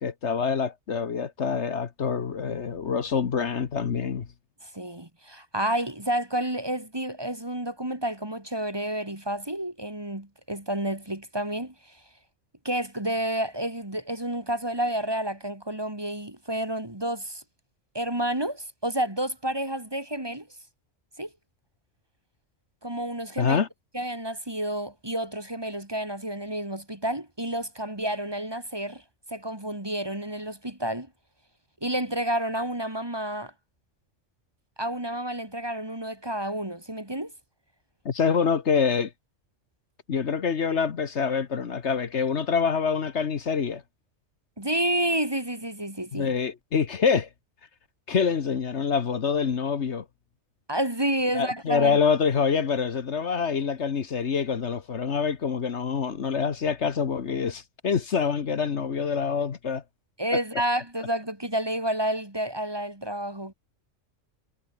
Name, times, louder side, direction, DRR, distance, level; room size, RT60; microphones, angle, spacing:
voice 1, 0.0-4.3 23.4-23.7 38.0-39.1 40.1-43.8 46.1-47.3 48.1-50.0 51.3-59.8 60.3-60.4, left 6 dB, 65° left, 1.5 m, -26 dB
voice 2, 4.6-12.0 12.6-17.4 17.9-20.5 21.2-21.3 22.8-23.6 23.9-29.0 29.3-31.1 31.8-33.5 34.8-37.3 44.6-46.3 50.7-52.0 60.2-63.5, right 1 dB, 20° right, 2.4 m, -30 dB
omnidirectional pair, 1.3 m